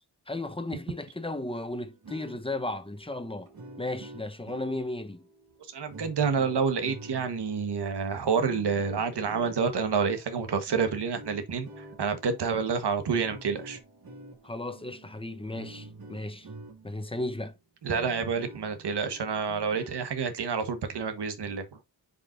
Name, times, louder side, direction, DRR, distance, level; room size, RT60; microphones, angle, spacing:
voice 1, 0.3-3.5 3.8-5.3 14.4-16.5 16.8-17.6, left 2 dB, 15° left, 1.0 m, -35 dB
sound 1, 1.9-17.1 17.5-17.6 17.9-20.1, right 2 dB, 60° right, 2.1 m, -48 dB
voice 2, 5.7-13.8 17.8-21.6, right 5 dB, 80° right, 1.4 m, -28 dB
6.8 x 5.4 x 2.6 m
cardioid pair, 75°, 40 cm